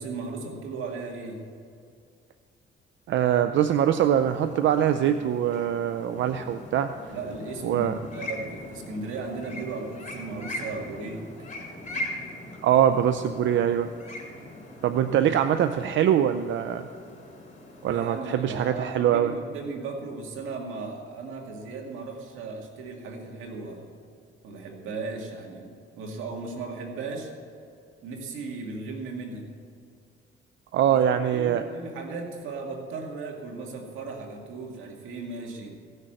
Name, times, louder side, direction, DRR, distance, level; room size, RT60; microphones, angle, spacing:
voice 1, 0.0-1.5 7.1-11.3 17.8-23.9 24.4-27.3 28.0-29.5 30.8-35.8, right 3 dB, 90° right, 1 dB, 2.0 m, -36 dB
voice 2, 3.1-6.9 7.6-8.0 12.6-13.9 14.8-16.9 17.8-19.3 30.7-31.6, right 10 dB, 70° right, 9 dB, 0.6 m, -23 dB
sound 1, 3.6-18.2, left 1 dB, 35° left, 4.0 m, -41 dB
16.5 x 6.6 x 7.8 m, 2.3 s
cardioid pair, 90°, 20 cm